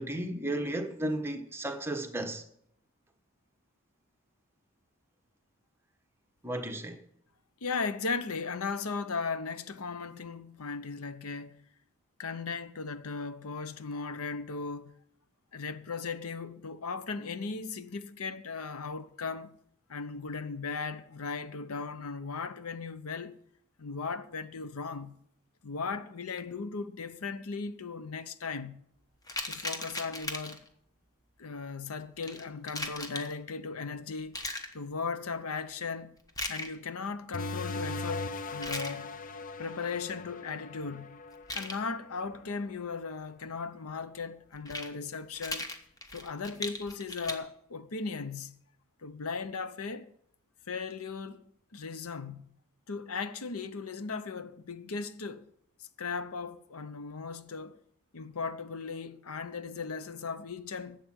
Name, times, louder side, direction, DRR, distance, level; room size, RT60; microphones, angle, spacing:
voice 1, 0.0-2.4 6.4-7.0, right 1 dB, 10° right, 1.1 m, -34 dB
voice 2, 7.6-11.6 12.2-14.9 15.5-19.6 19.9-23.4 23.8-25.2 25.6-28.7 29.4-30.7 31.4-34.4 34.7-36.1 36.5-39.1 39.6-41.1 41.5-45.7 46.1-48.6 49.0-50.1 50.7-51.4 51.7-52.5 52.9-55.5 56.0-57.8 58.1-61.0, left 4 dB, 80° left, 0.8 m, -37 dB
sound 1, 29.3-30.7 32.2-33.3 34.3-34.7 36.3-36.8 38.5-38.9 41.3-41.8 44.5-44.9 45.3-47.4, left 2 dB, 15° left, 1.1 m, -37 dB
sound 2, 37.3-42.5, left 3 dB, 40° left, 0.5 m, -39 dB
11.5 x 7.5 x 7.4 m
head